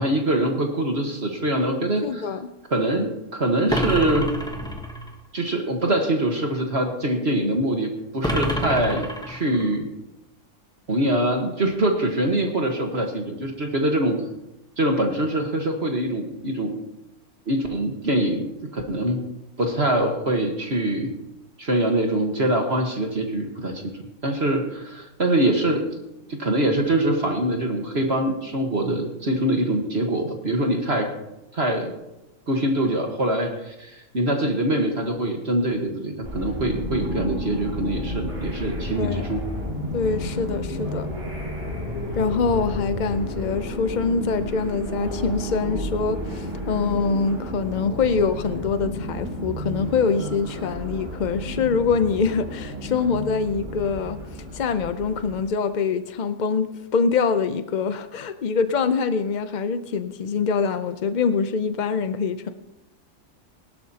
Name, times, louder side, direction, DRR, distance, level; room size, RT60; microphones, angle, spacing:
voice 1, 0.0-2.3 2.7-4.3 5.3-9.9 10.9-14.2 14.8-16.7 17.5-19.2 19.6-21.1 21.6-23.9 24.2-25.9 26.3-31.1 31.5-31.9 32.5-39.5, right 1 dB, 45° right, 2 dB, 1.6 m, -24 dB
voice 2, 2.0-2.5 39.0-39.3 39.9-41.1 42.2-62.5, left 5 dB, 65° left, 10 dB, 0.4 m, -24 dB
sound 1, 3.7-5.1 8.2-9.7, equal, 5° left, 0.8 m, -27 dB
sound 2, 36.2-55.4, left 1 dB, 20° right, 5.2 m, -31 dB
21.0 x 12.0 x 2.9 m, 0.93 s
omnidirectional pair, 1.6 m